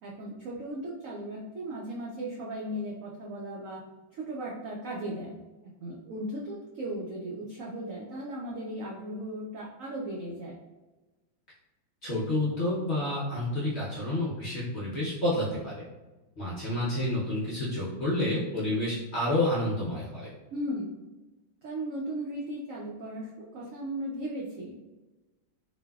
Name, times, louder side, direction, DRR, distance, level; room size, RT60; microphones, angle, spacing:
voice 1, 0.0-3.8 4.1-5.3 5.6-10.5 20.5-20.9 21.6-24.8, right 1 dB, 90° right, -4 dB, 0.7 m, -36 dB
voice 2, 12.0-15.8 16.4-20.3, left 1 dB, 55° left, -7 dB, 0.7 m, -29 dB
3.9 x 2.6 x 2.3 m, 1.1 s
omnidirectional pair, 2.0 m